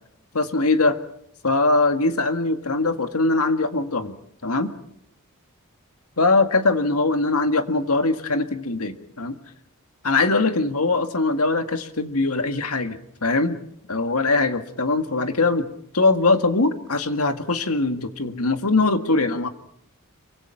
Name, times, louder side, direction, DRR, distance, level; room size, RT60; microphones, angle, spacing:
voice 1, 0.3-1.0 1.4-4.2 4.4-4.7 6.2-9.4 10.0-13.6 13.9-15.7 15.9-19.5, left 3 dB, 80° left, 8 dB, 1.8 m, -21 dB
25.5 x 24.5 x 5.8 m, 0.71 s
head